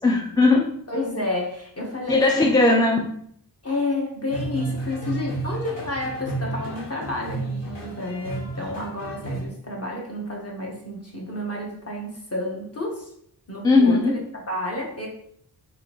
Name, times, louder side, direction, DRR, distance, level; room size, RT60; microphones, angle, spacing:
voice 1, 0.0-0.7 2.1-3.0 13.6-14.1, left 3 dB, 10° left, 0 dB, 0.3 m, -18 dB
voice 2, 0.9-2.6 3.6-13.1 13.5-15.1, left 2 dB, 35° left, -1 dB, 1.1 m, -30 dB
sound 1, 4.3-9.5, right 2 dB, 75° left, 1.1 m, -32 dB
3.6 x 2.6 x 3.0 m, 0.69 s
cardioid pair, 50°, 42 cm